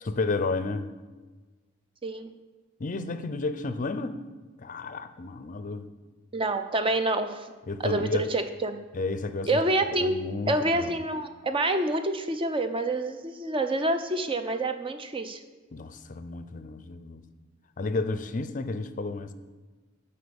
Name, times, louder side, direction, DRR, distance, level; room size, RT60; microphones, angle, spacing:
voice 1, 0.0-0.9 2.8-4.2 4.6-5.9 7.7-8.3 8.9-9.6 10.0-11.0 15.7-17.2 17.8-19.3, left 3 dB, 40° left, 11 dB, 0.5 m, -32 dB
voice 2, 6.3-7.5 7.8-8.8 9.4-10.2 10.5-15.4, right 2 dB, 25° right, 8 dB, 0.6 m, -27 dB
7.9 x 5.6 x 7.0 m, 1.3 s
head